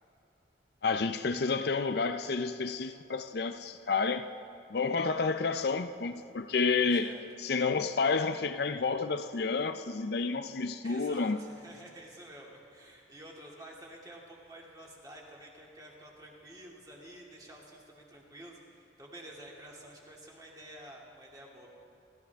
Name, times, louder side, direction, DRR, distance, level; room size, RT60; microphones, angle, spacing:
voice 1, 0.8-4.3 4.7-7.1 7.4-11.4, left 4 dB, 55° left, 0.5 m, -30 dB
voice 2, 6.9-7.2 10.8-21.7, right 1 dB, 20° right, 2.4 m, -50 dB
28.5 x 14.0 x 3.5 m
head